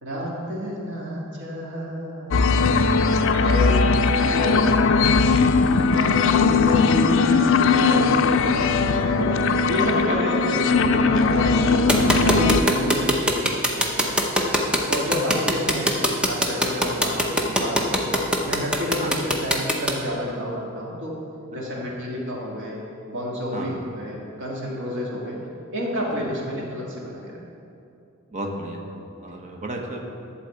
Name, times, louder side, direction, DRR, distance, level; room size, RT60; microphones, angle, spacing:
voice 1, 0.0-2.8 3.4-3.9 4.2-4.6 5.9-8.7 9.2-18.2 18.5-21.2 21.5-22.8 23.1-25.4 25.7-27.4, equal, 60° right, -3 dB, 1.9 m, -29 dB
sound 1, 2.3-12.6, left 4 dB, 60° left, 0.4 m, -19 dB
sound 2, 11.9-19.9, equal, 5° right, 0.7 m, -21 dB
voice 2, 28.3-28.8 29.2-30.0, right 1 dB, 35° right, 1 dB, 1.0 m, -34 dB
11.5 x 4.0 x 7.8 m, 2.7 s
head